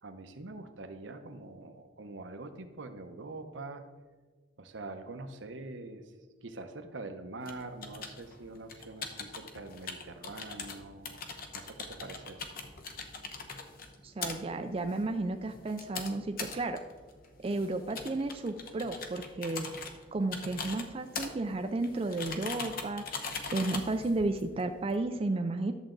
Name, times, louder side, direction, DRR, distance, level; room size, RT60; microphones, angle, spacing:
voice 1, 0.0-3.8 4.6-6.1 6.4-11.2 11.5-12.4, right 2 dB, 85° right, 7 dB, 0.9 m, -44 dB
sound 1, 7.4-25.0, left 4 dB, 50° left, 0.9 m, -42 dB
voice 2, 14.0-16.8 17.4-19.7 20.1-23.1 23.5-25.7, right 2 dB, 30° right, 6 dB, 0.4 m, -33 dB
11.0 x 7.1 x 3.9 m, 1.4 s
head